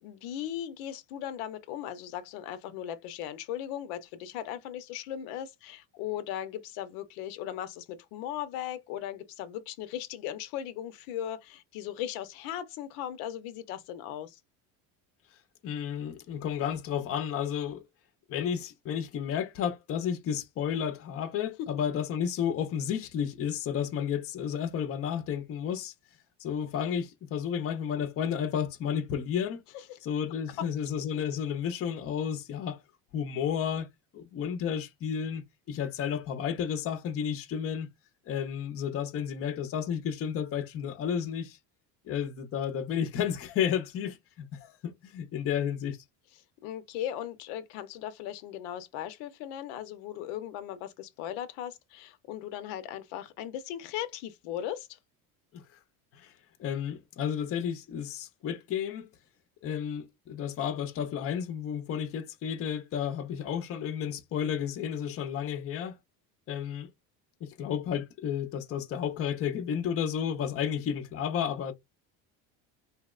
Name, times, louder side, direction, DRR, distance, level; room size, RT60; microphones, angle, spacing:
voice 1, 0.0-14.4 46.6-55.0, left 11 dB, 85° left, 0.6 m, -38 dB
voice 2, 15.6-17.8 18.3-25.9 26.4-29.6 30.0-32.8 33.1-33.9 34.1-37.9 38.3-41.6 42.1-46.0 55.5-55.6 56.1-56.3 56.6-59.1 59.6-66.0 66.5-66.9 67.4-71.7, left 8 dB, 35° left, 0.5 m, -32 dB
2.8 x 2.0 x 2.3 m
cardioid pair, 120°, 38 cm